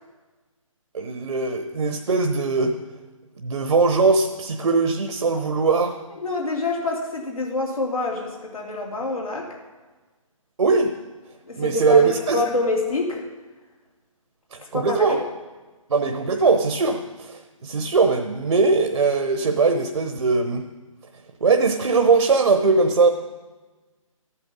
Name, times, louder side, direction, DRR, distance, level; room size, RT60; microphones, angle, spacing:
voice 1, 0.9-2.8 3.4-6.0 10.6-10.9 11.6-12.4 14.5-15.2 15.9-20.6 21.4-23.1, right 4 dB, 65° right, 6 dB, 1.0 m, -20 dB
voice 2, 6.1-9.5 11.5-13.2 14.6-15.2, left 3 dB, 85° left, -2 dB, 3.0 m, -26 dB
14.0 x 8.6 x 5.4 m, 1.3 s
figure-of-eight pair, 145°, 18 cm